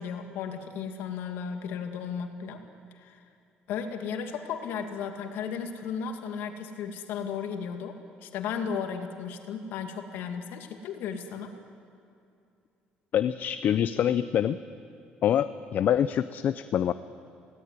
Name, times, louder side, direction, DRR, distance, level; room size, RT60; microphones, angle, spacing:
voice 1, 0.0-2.6 2.9-3.2 3.7-11.5, left 6 dB, 80° left, 5 dB, 2.3 m, -35 dB
voice 2, 13.1-14.6 15.2-16.9, left 10 dB, 60° left, 12 dB, 0.6 m, -25 dB
22.0 x 17.5 x 9.7 m, 2.5 s
cardioid pair, 95°, 4 cm